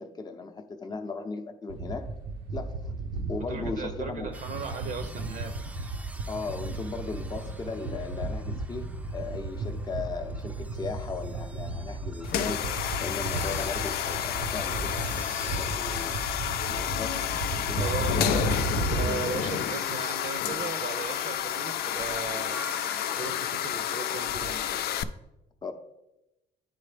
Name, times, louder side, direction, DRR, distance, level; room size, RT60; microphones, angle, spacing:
voice 1, 0.0-2.1 2.5-3.0 3.3-4.3 6.3-12.7 13.0-16.2 16.7-18.5 25.6-25.7, left 4 dB, 25° left, 0.7 m, -37 dB
sound 1, 1.7-19.1, right 3 dB, 90° right, 0.7 m, -34 dB
voice 2, 3.4-5.5 17.7-18.7 19.0-22.6 23.2-24.8, right 5 dB, 50° right, 0.6 m, -37 dB
sound 2, 4.3-23.2, right 2 dB, 10° right, 0.3 m, -50 dB
sound 3, 12.2-25.0, left 10 dB, 70° left, 0.4 m, -30 dB
10.0 x 3.8 x 3.3 m
cardioid pair, 110°, 17 cm